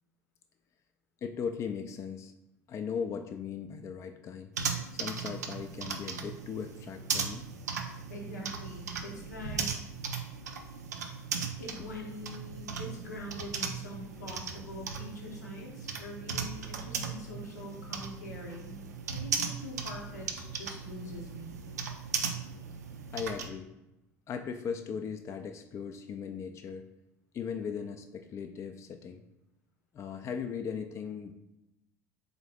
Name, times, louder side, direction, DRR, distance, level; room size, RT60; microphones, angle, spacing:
voice 1, 1.2-2.3 2.7-4.5 4.9-7.5 23.1-23.7 24.3-26.9 27.3-29.2 29.9-31.3, left 6 dB, 35° left, 6 dB, 0.3 m, -38 dB
sound 1, 4.5-23.5, right 6 dB, 80° right, 0.4 m, -37 dB
voice 2, 8.1-9.8 11.1-11.2 11.6-21.6, left 1 dB, 80° left, -1 dB, 0.8 m, -44 dB
3.8 x 2.6 x 3.4 m, 0.91 s
figure-of-eight pair, 65°, 9 cm